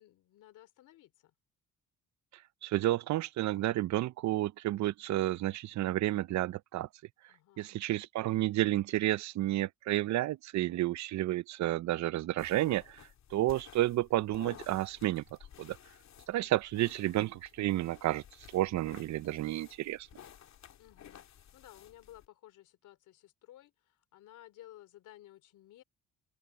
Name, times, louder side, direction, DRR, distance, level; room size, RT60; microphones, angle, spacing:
voice 1, 0.0-1.3 7.3-7.7 16.4-16.9 20.7-21.3 21.5-25.8, left 14 dB, 85° left, 3.2 m, -56 dB
voice 2, 2.6-6.9 7.6-15.2 15.6-15.8 16.3-18.2 18.5-20.1, right 15 dB, 65° right, 0.5 m, -31 dB
sound 1, 12.4-22.3, left 10 dB, 65° left, 2.6 m, -55 dB
open air
cardioid pair, 90°, 30 cm